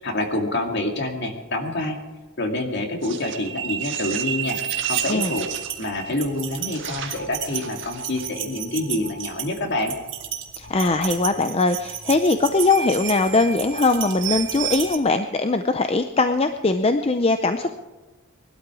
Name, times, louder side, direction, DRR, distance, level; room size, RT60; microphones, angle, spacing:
voice 1, 0.0-2.0 2.4-4.6 4.9-5.5 5.8-10.0, left 1 dB, 50° left, 4 dB, 2.2 m, -27 dB
sound 1, 3.0-15.0, right 9 dB, 55° right, 1.8 m, -31 dB
voice 2, 10.6-17.7, left 3 dB, 25° left, 8 dB, 0.5 m, -21 dB
20.0 x 12.5 x 4.8 m, 1.2 s
head